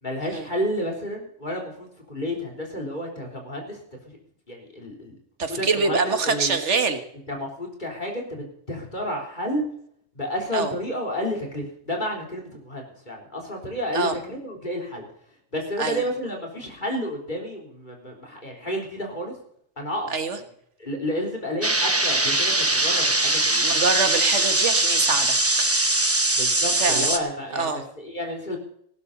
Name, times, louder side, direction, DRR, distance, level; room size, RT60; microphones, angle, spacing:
voice 1, 0.0-4.2 4.5-5.1 5.5-6.6 7.3-9.6 10.1-15.0 15.5-19.4 19.8-20.1 20.8-23.8 26.3-28.6, equal, 40° left, 0 dB, 3.9 m, -31 dB
voice 2, 5.4-7.0 10.5-10.7 13.9-14.2 15.8-16.0 20.1-20.4 23.6-25.7 26.8-27.1 27.5-27.8, right 4 dB, 85° right, 8 dB, 1.8 m, -25 dB
sound 1, 21.6-27.2, right 2 dB, 15° right, 0.9 m, -21 dB
18.5 x 12.0 x 4.1 m, 0.68 s
omnidirectional pair, 1.2 m